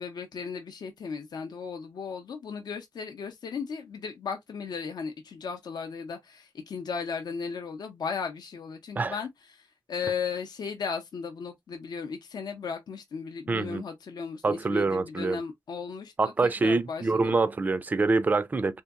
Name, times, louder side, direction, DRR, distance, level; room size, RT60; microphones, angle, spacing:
voice 1, 0.0-17.4, left 5 dB, 70° left, 0.6 m, -36 dB
voice 2, 13.5-13.8 14.4-15.4 16.2-18.8, right 3 dB, 25° right, 0.3 m, -25 dB
3.5 x 2.8 x 2.4 m
wide cardioid pair, 150°, 7 cm